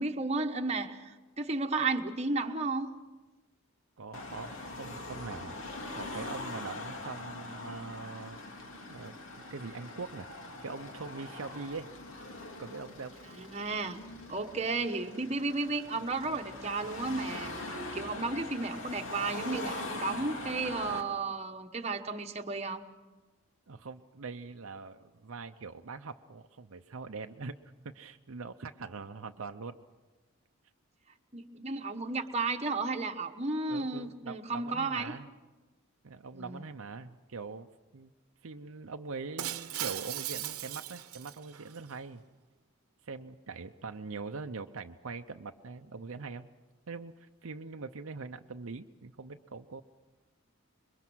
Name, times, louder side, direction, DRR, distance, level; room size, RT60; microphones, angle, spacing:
voice 1, 0.0-2.9 13.4-14.0 14.3-22.9 31.3-35.1 36.3-36.6, right 3 dB, 30° right, 4 dB, 1.1 m, -33 dB
voice 2, 4.0-4.5 4.8-8.6 8.9-9.1 9.5-10.3 10.6-11.9 12.6-13.1 23.7-27.5 27.8-29.8 33.7-35.3 36.0-37.7 37.9-38.1 38.4-42.2 43.0-46.5 46.9-49.8, right 4 dB, 70° right, 6 dB, 0.7 m, -42 dB
Car passing by / Traffic noise roadway noise / Engine, 4.1-21.0, left 2 dB, 65° left, 2.7 m, -42 dB
Shatter, 39.4-41.8, right 12 dB, 85° right, 1.0 m, -38 dB
26.0 x 22.5 x 6.2 m, 1.2 s
head